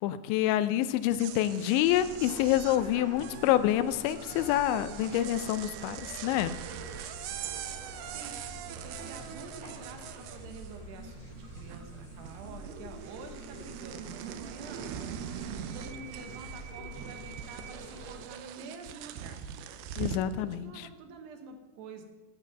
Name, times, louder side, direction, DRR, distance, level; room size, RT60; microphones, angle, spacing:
voice 1, 0.0-6.6 20.0-20.9, left 12 dB, 85° left, 13 dB, 2.8 m, -27 dB
sound 1, 1.0-11.0 11.3-12.0 12.3-20.3, right 10 dB, 90° right, 2.2 m, -43 dB
sound 2, 1.8-18.2, right 1 dB, 40° right, 6.5 m, -45 dB
voice 2, 8.0-14.9 15.7-19.5 20.4-22.0, right 4 dB, 75° right, 6 dB, 2.9 m, -48 dB
12.5 x 9.4 x 5.7 m, 1.2 s
omnidirectional pair, 5.2 m